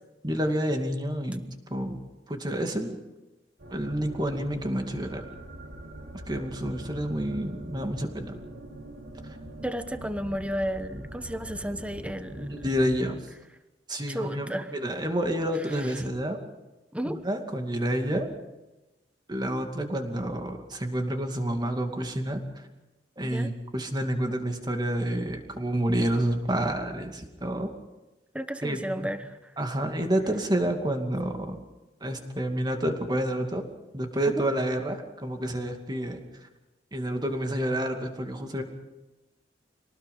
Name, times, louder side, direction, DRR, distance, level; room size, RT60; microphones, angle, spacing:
voice 1, 0.2-1.4 1.7-2.0 2.3-3.0 3.7-5.2 6.3-8.4 12.5-13.2 13.9-16.4 17.0-18.3 19.3-22.4 23.2-27.7 28.6-29.1 29.6-31.6 32.0-33.6 33.9-36.2 36.9-38.6, right 1 dB, 25° right, 4 dB, 2.5 m, -29 dB
sound 1, 3.6-13.0, right 1 dB, 70° right, 3.5 m, -43 dB
voice 2, 9.6-12.6 14.1-14.8 15.7-16.0 16.9-17.2 23.2-23.5 28.3-29.4, equal, 5° right, 10 dB, 1.0 m, -33 dB
26.5 x 19.0 x 5.5 m, 1.0 s
head